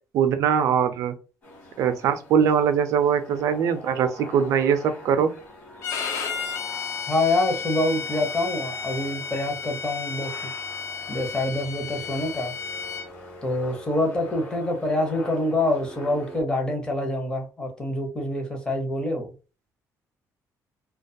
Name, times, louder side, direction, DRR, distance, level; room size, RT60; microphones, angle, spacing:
voice 1, 0.1-1.1 1.8-5.3, right 7 dB, 55° right, 0.4 m, -22 dB
sound 1, 1.4-16.4, left 1 dB, 35° left, 1.1 m, -43 dB
Bowed string instrument, 5.8-13.1, left 5 dB, 55° left, 0.4 m, -33 dB
voice 2, 7.1-10.3 11.1-12.5 13.4-19.3, left 1 dB, 15° left, 0.6 m, -26 dB
2.3 x 2.2 x 2.6 m
cardioid pair, 180°, 6 cm